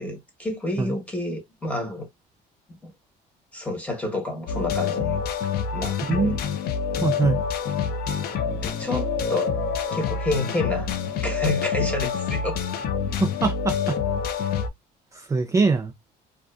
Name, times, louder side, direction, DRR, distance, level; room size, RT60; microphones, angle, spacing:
voice 1, 0.0-2.1 2.8-2.9 3.5-5.2 5.7-6.4 8.3-9.6 9.9-11.0 11.2-12.6 13.1-13.2, left 2 dB, 10° left, 1.1 m, -29 dB
sound 1, 4.5-14.7, left 6 dB, 65° left, 0.5 m, -27 dB
voice 2, 7.0-7.4 13.2-14.0 15.1-15.9, right 4 dB, 20° right, 0.4 m, -23 dB
2.4 x 2.4 x 2.3 m
cardioid pair, 110°, 17 cm